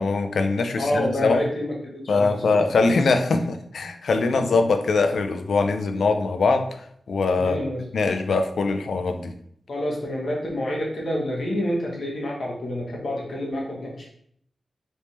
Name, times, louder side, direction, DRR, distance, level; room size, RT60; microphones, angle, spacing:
voice 1, 0.0-1.4 2.1-6.7 7.1-7.6 7.9-9.3, left 3 dB, 75° left, 7 dB, 0.4 m, -22 dB
voice 2, 0.8-2.6 7.4-7.8 9.7-14.1, left 1 dB, 55° left, -3 dB, 1.1 m, -28 dB
3.4 x 3.2 x 2.8 m, 0.66 s
wide cardioid pair, 150°, 0 cm